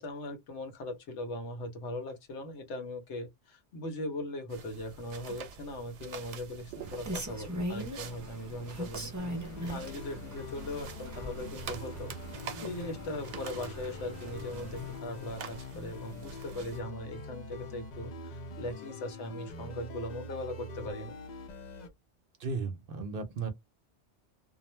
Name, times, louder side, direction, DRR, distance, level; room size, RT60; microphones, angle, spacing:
voice 1, 0.0-9.1 9.6-21.2, left 1 dB, 80° left, 1.1 m, -39 dB
sound 1, 4.5-16.8, right 7 dB, 85° right, 0.9 m, -47 dB
Rain, 6.8-15.0, equal, 20° right, 0.5 m, -41 dB
sound 2, 9.2-21.9, left 3 dB, 50° left, 0.6 m, -44 dB
voice 2, 22.4-23.5, right 4 dB, 60° right, 0.7 m, -35 dB
2.4 x 2.1 x 3.0 m
omnidirectional pair, 1.2 m